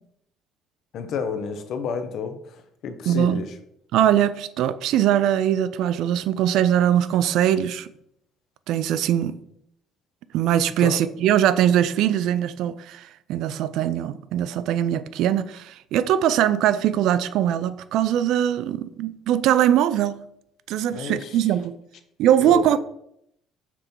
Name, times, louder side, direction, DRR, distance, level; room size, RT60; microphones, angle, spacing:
voice 1, 0.9-3.5 10.8-11.0 20.9-21.5 22.4-22.8, left 6 dB, 55° left, 0.9 m, -31 dB
voice 2, 3.1-3.4 3.9-7.9 8.7-9.4 10.3-20.2 20.7-21.7 22.2-22.8, right 10 dB, 70° right, 0.4 m, -21 dB
6.0 x 4.3 x 5.3 m
cardioid pair, 145°, 0 cm